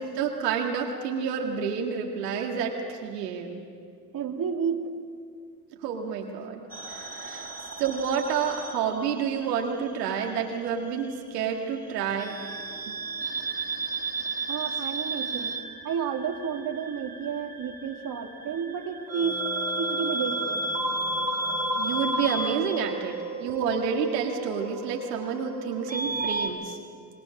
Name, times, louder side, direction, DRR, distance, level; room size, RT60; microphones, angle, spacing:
voice 1, 0.0-3.6 5.8-7.5 7.8-12.4 12.9-13.0 21.8-26.8, right 6 dB, 85° right, 1 dB, 2.1 m, -29 dB
voice 2, 4.1-5.0 7.2-7.5 14.5-15.6 15.8-19.5 19.8-20.6, right 7 dB, 45° right, 3 dB, 2.3 m, -31 dB
sound 1, 6.7-9.5 9.8-11.0 12.2-26.5, right 2 dB, 20° right, 4.5 m, -32 dB
25.5 x 19.5 x 6.4 m, 2.2 s
hypercardioid pair, 75°, 47 cm